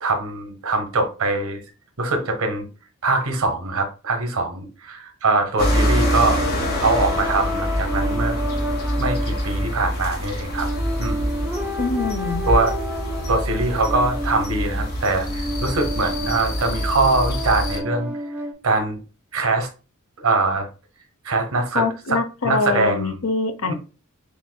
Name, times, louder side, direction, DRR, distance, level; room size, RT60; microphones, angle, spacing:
voice 1, 0.0-1.6 2.0-2.6 3.0-6.4 6.8-8.3 9.0-10.7 11.0-11.3 12.5-12.7 13.3-18.1 18.6-19.0 19.3-19.7 20.2-20.7 21.2-23.2 23.7-23.8, right 3 dB, 80° right, 6 dB, 1.1 m, -22 dB
sound 1, 5.6-17.8, equal, 45° left, 1.2 m, -25 dB
sound 2, 5.6-18.5, equal, 5° right, 0.7 m, -30 dB
voice 2, 11.8-12.5 21.7-23.7, left 4 dB, 70° left, 8 dB, 0.6 m, -24 dB
6.9 x 2.5 x 2.2 m, 0.33 s
head